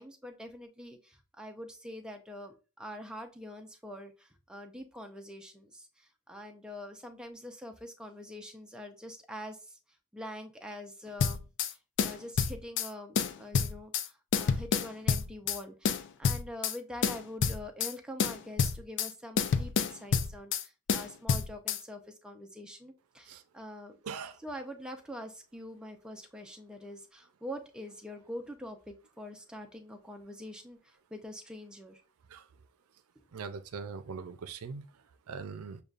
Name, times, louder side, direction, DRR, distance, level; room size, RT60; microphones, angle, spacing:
voice 1, 0.0-9.8 10.1-11.4 11.7-24.0 24.4-32.0 33.2-33.3, left 1 dB, 5° right, 0.5 m, -45 dB
sound 1, 11.2-11.7 12.0-12.9 13.2-14.1 14.3-15.6 15.9-16.8 17.0-17.9 18.2-19.1 19.4-20.6 20.9-21.8, left 6 dB, 55° left, 0.4 m, -28 dB
voice 2, 24.0-24.4 32.3-32.5 33.3-35.8, right 5 dB, 85° right, 0.5 m, -41 dB
6.5 x 2.3 x 2.4 m
head